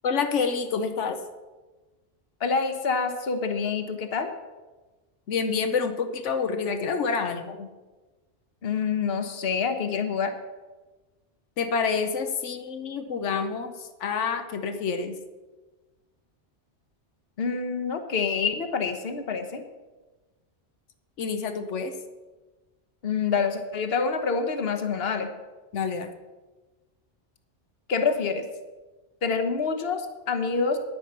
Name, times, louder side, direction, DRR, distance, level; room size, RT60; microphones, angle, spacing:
voice 1, 0.0-1.2 5.3-7.7 11.6-15.2 21.2-21.9 25.7-26.1, left 5 dB, 90° left, 7 dB, 1.2 m, -28 dB
voice 2, 2.4-4.3 8.6-10.3 17.4-19.6 23.0-25.3 27.9-28.5 29.2-30.8, left 5 dB, 60° left, 7 dB, 1.3 m, -27 dB
10.0 x 9.4 x 6.7 m, 1.2 s
omnidirectional pair, 1.2 m